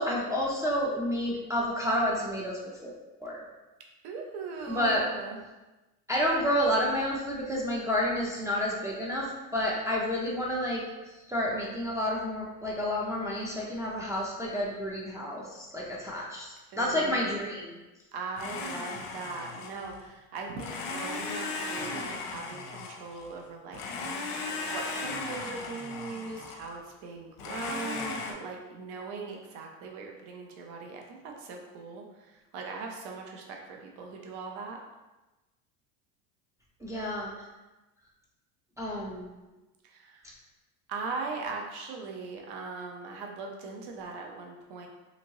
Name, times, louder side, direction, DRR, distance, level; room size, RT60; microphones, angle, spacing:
voice 1, 0.0-3.4 4.7-5.0 6.1-10.8 11.3-17.7 36.8-37.3 38.8-39.3, equal, 5° right, -5 dB, 0.4 m, -30 dB
voice 2, 4.0-5.4 16.7-23.8 24.7-34.8 39.9-40.2 40.9-44.9, right 4 dB, 55° right, 1 dB, 0.7 m, -40 dB
Domestic sounds home sounds, 18.4-20.0 20.6-23.3 23.7-26.8 27.4-28.3, left 3 dB, 55° left, 0.6 m, -37 dB
2.8 x 2.6 x 2.9 m, 1.1 s
hypercardioid pair, 80°, 47 cm